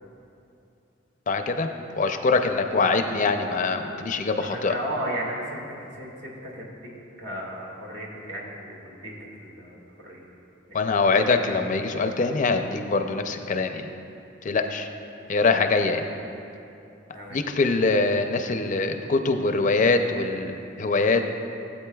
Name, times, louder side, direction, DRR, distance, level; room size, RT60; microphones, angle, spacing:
voice 1, 1.3-1.7 1.9-4.7 10.7-13.9 14.4-14.9 15.3-16.1 17.3-21.2, left 3 dB, 40° left, 6 dB, 0.5 m, -23 dB
voice 2, 4.4-6.9 7.2-10.2 10.7-11.5 14.5-14.7 17.1-17.4, equal, 70° right, -3 dB, 1.9 m, -36 dB
16.5 x 8.1 x 2.3 m, 2.7 s
head